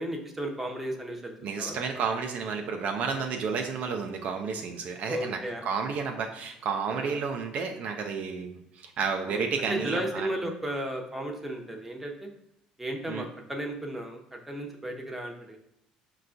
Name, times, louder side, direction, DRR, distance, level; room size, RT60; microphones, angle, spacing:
voice 1, 0.0-1.3 1.6-1.8 5.0-5.6 6.9-7.2 9.2-12.3 12.8-15.6, right 1 dB, 10° right, 1 dB, 0.7 m, -34 dB
voice 2, 1.4-10.3 13.1-13.2, right 5 dB, 60° right, 4 dB, 0.4 m, -31 dB
5.3 x 2.2 x 2.5 m, 0.80 s
supercardioid pair, 80°, 3 cm